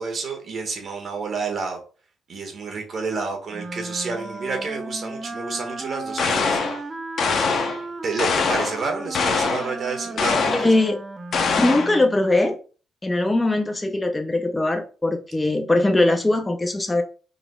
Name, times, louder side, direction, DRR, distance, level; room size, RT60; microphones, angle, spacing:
voice 1, 0.0-1.8 2.3-6.6 8.0-10.8, right 4 dB, 50° right, 3 dB, 1.6 m, -29 dB
Wind instrument woodwind instrument, 3.5-12.2, right 2 dB, 25° right, 0.7 m, -35 dB
sound 1, 6.2-6.8 7.2-7.8 8.2-8.8 9.1-9.7 10.2-10.7 11.3-12.0, left 5 dB, 55° left, 0.9 m, -23 dB
voice 2, 10.6-11.0 11.6-12.6 13.0-17.0, left 2 dB, 15° left, 4 dB, 0.6 m, -20 dB
4.9 x 4.0 x 2.3 m, 0.37 s
cardioid pair, 90°, 0 cm